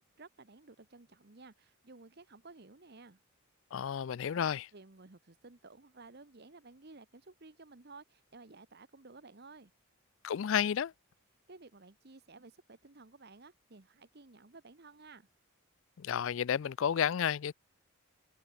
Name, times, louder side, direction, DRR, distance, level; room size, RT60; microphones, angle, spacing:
voice 1, 0.0-3.2 4.3-9.7 11.5-15.3, right 3 dB, 45° right, 1.1 m, -55 dB
voice 2, 3.7-4.7 10.2-10.9 16.0-17.5, left 8 dB, 60° left, 0.4 m, -31 dB
head